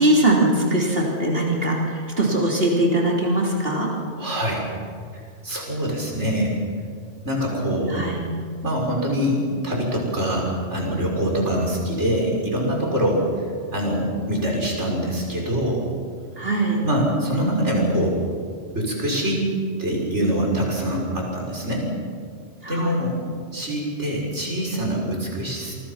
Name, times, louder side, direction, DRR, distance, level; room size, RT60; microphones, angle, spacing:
voice 1, 0.0-3.9 7.9-8.2 16.4-16.8 22.6-23.0, right 1 dB, 55° right, -2 dB, 3.6 m, -21 dB
voice 2, 4.2-4.6 5.4-6.6 7.2-8.0 8.6-13.3 13.7-15.8 16.8-18.2 18.7-19.4 19.8-21.9 22.7-23.2 23.5-25.7, equal, 85° right, -1 dB, 6.3 m, -24 dB
28.0 x 24.5 x 5.8 m, 2.1 s
omnidirectional pair, 1.2 m